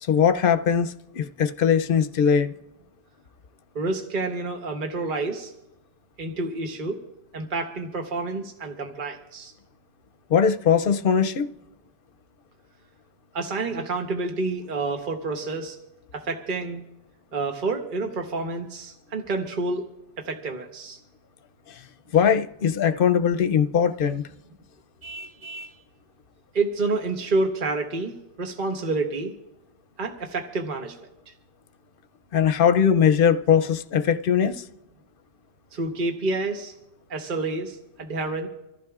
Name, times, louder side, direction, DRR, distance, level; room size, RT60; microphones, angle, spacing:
voice 1, 0.0-2.6 10.3-11.4 21.7-21.8 22.1-24.2 32.3-34.6, left 7 dB, 65° left, 0.8 m, -20 dB
voice 2, 3.7-5.5 6.2-7.0 7.3-9.5 13.3-15.8 16.1-16.8 17.3-19.8 20.2-21.0 26.5-28.1 28.4-29.3 30.0-31.0 31.3-31.4 35.7-36.7 37.1-38.5, right 3 dB, 55° right, 1.2 m, -28 dB
Vehicle horn car horn honking, 25.0-25.8, right 2 dB, 30° right, 0.7 m, -40 dB
26.0 x 14.5 x 2.4 m
omnidirectional pair, 1.0 m